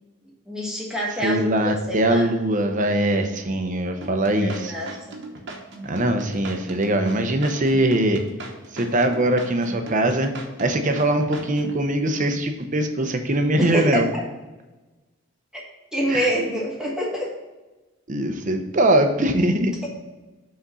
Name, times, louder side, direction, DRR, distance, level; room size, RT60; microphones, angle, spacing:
voice 1, 0.5-2.3 4.4-4.9 13.6-14.0 15.9-17.3, equal, 5° right, -4 dB, 1.3 m, -26 dB
voice 2, 1.2-4.7 5.8-8.2 8.7-10.3 10.6-14.1 16.1-16.3 18.1-19.7, right 1 dB, 35° right, 6 dB, 0.7 m, -21 dB
sound 1, 4.0-11.8, right 2 dB, 55° right, 1.1 m, -38 dB
6.2 x 4.3 x 5.5 m, 1.1 s
head